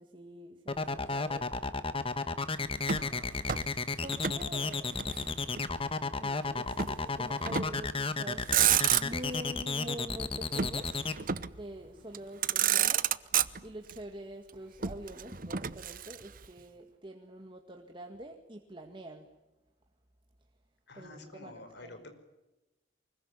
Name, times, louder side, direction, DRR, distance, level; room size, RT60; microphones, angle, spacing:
voice 1, 0.0-1.6 3.9-4.9 6.1-13.1 13.6-19.3 20.9-22.1, right 1 dB, 25° right, 3 dB, 2.0 m, -46 dB
sound 1, 0.7-11.1, left 3 dB, 30° left, 1.4 m, -33 dB
voice 2, 2.7-3.4 20.9-22.1, left 2 dB, 60° left, 7 dB, 5.2 m, -50 dB
Motor vehicle (road), 2.8-4.5 4.7-5.8 6.8-7.0 7.5-7.9 8.3-9.4 10.6-11.6 12.1-12.2 12.4-13.9 14.8-16.5, right 9 dB, 45° right, 0.9 m, -30 dB
24.5 x 22.5 x 9.9 m, 1.0 s
head